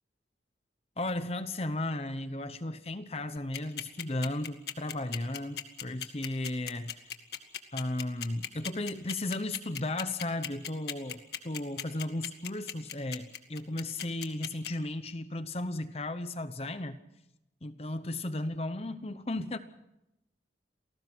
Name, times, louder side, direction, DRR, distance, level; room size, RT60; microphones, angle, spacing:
voice 1, 1.0-7.0 7.7-17.0 17.6-19.6, left 1 dB, 35° left, 11 dB, 0.9 m, -35 dB
sound 1, 3.4-14.7, left 9 dB, 65° left, 1.9 m, -37 dB
28.5 x 19.0 x 6.2 m, 0.88 s
head